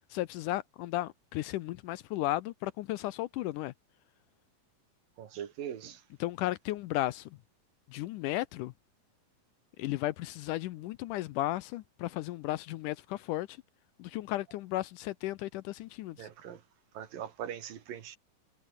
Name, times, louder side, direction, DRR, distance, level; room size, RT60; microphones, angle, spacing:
voice 1, 0.1-3.7 6.2-7.4 7.9-8.7 9.8-13.6 14.0-16.3, left 16 dB, 80° left, 2.0 m, -34 dB
voice 2, 5.2-6.1 16.2-16.6 16.9-18.2, right 9 dB, 75° right, 3.9 m, -41 dB
omnidirectional pair, 4.0 m